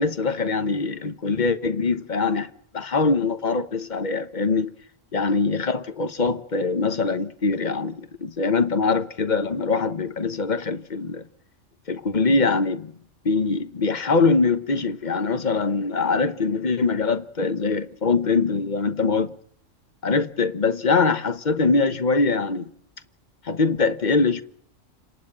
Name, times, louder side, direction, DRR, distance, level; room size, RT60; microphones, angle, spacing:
voice 1, 0.0-4.7 5.1-11.2 11.9-12.9 13.2-19.4 20.0-22.7 23.4-24.4, left 4 dB, 40° left, 1.2 m, -23 dB
29.0 x 11.5 x 8.8 m
omnidirectional pair, 1.3 m